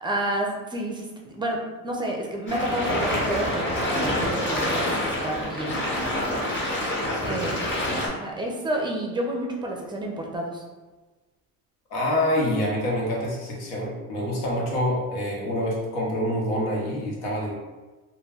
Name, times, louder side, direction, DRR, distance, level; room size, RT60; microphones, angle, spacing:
voice 1, 0.0-5.8 7.2-7.6 8.0-10.6 14.3-14.4, right 1 dB, 10° right, 0 dB, 0.4 m, -30 dB
sound 1, 2.5-8.1, left 1 dB, 30° left, 0.9 m, -27 dB
voice 2, 7.2-7.5 11.9-17.6, left 1 dB, 75° left, -2 dB, 1.0 m, -26 dB
2.3 x 2.1 x 3.4 m, 1.2 s
supercardioid pair, 95°, 43 cm